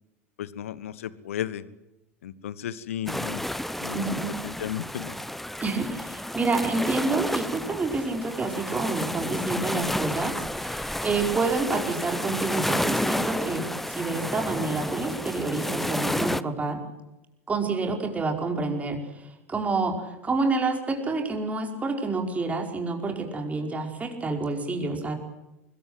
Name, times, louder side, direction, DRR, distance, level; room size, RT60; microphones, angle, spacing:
voice 1, 0.4-1.6 2.2-3.4 3.8-5.1, left 10 dB, 65° left, 18 dB, 1.4 m, -34 dB
sound 1, 3.1-16.4, left 1 dB, 5° left, 0.8 m, -31 dB
voice 2, 3.9-4.4 5.6-16.8 17.5-19.0 19.5-25.1, right 3 dB, 20° right, 3 dB, 5.0 m, -28 dB
25.0 x 21.5 x 8.0 m, 0.96 s
figure-of-eight pair, 85°, 8 cm